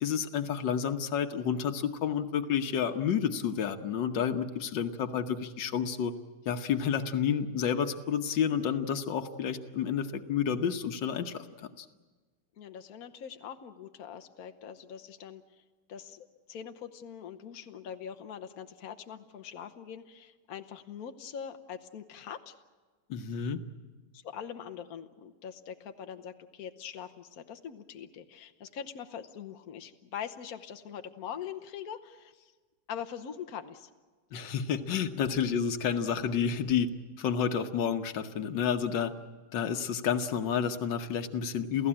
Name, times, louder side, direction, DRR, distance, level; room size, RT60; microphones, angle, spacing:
voice 1, 0.0-6.1 6.5-11.9 23.1-23.6 34.3-36.9 37.2-39.1 39.5-41.9, left 7 dB, 90° left, 7 dB, 1.8 m, -30 dB
voice 2, 12.6-15.4 15.9-22.6 24.2-32.5 32.9-33.9, left 8 dB, 60° left, 8 dB, 1.4 m, -43 dB
28.5 x 16.0 x 8.7 m, 1.4 s
omnidirectional pair, 1.9 m